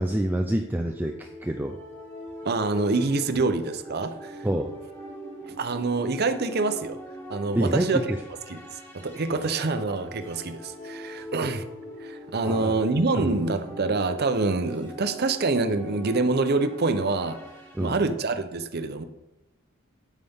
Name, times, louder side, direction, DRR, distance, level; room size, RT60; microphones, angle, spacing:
voice 1, 0.0-1.8 4.4-4.7 7.5-8.2 11.2-11.3 12.4-12.8 13.2-13.3 17.7-18.0, right 1 dB, 10° right, 4 dB, 0.4 m, -27 dB
sound 1, 0.7-18.0, equal, 10° left, 1.9 m, -42 dB
voice 2, 2.4-4.5 5.4-7.0 7.3-8.1 8.5-11.7 12.0-17.4 17.8-19.0, right 3 dB, 45° right, 9 dB, 0.7 m, -26 dB
9.2 x 8.3 x 3.6 m, 0.94 s
head